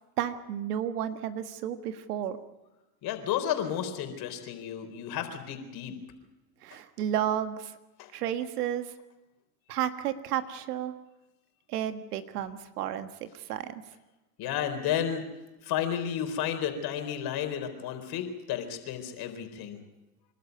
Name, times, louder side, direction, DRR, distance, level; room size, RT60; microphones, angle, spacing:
voice 1, 0.2-2.4 6.6-7.7 8.1-8.9 9.7-10.9 11.7-13.8, right 10 dB, 85° right, 10 dB, 1.6 m, -32 dB
voice 2, 3.0-5.9 8.0-8.1 14.4-15.3 15.6-19.8, left 9 dB, 55° left, 6 dB, 4.2 m, -32 dB
27.5 x 12.5 x 9.4 m, 1.1 s
hypercardioid pair, 95°, 45 cm